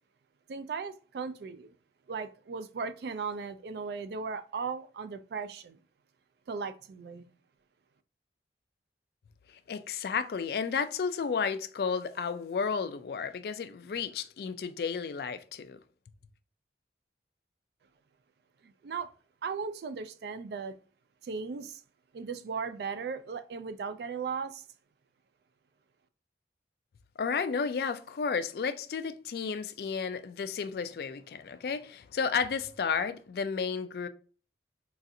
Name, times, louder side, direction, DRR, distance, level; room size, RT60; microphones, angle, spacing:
voice 1, 0.5-1.7 2.1-5.8 6.5-7.3 18.6-19.1 19.4-20.8 21.2-21.8 22.1-24.6, right 5 dB, 65° right, 0.3 m, -37 dB
voice 2, 9.7-15.8 27.2-34.1, left 6 dB, 55° left, 0.3 m, -32 dB
4.0 x 2.4 x 2.6 m
head